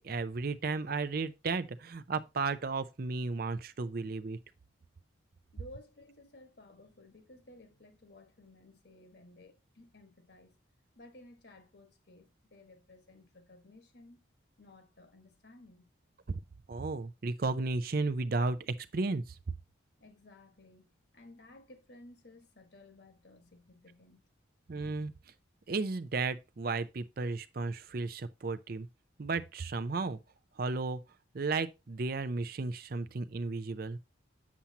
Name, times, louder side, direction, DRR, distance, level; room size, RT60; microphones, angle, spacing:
voice 1, 0.0-4.4 16.3-16.4 16.7-19.4 24.7-25.1 25.7-28.9 29.2-30.2 30.6-31.0 31.3-34.0, right 3 dB, 50° right, 0.5 m, -34 dB
voice 2, 5.5-10.6 10.9-14.2 14.6-15.9 20.0-20.9 21.1-24.2, left 2 dB, 55° left, 1.5 m, -56 dB
7.2 x 7.2 x 2.8 m
head